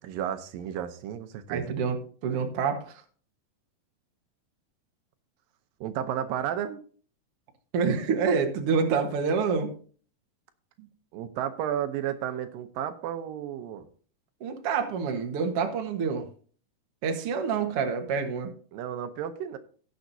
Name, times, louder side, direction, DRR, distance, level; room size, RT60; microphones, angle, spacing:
voice 1, 0.0-1.8 5.8-6.8 11.1-13.9 18.7-19.6, right 10 dB, 85° right, 9 dB, 2.6 m, -32 dB
voice 2, 1.5-2.0 2.2-3.0 7.7-9.7 10.8-10.9 14.4-16.3 17.0-18.5, right 5 dB, 55° right, 3 dB, 1.8 m, -27 dB
16.5 x 7.0 x 2.7 m, 0.43 s
omnidirectional pair, 4.0 m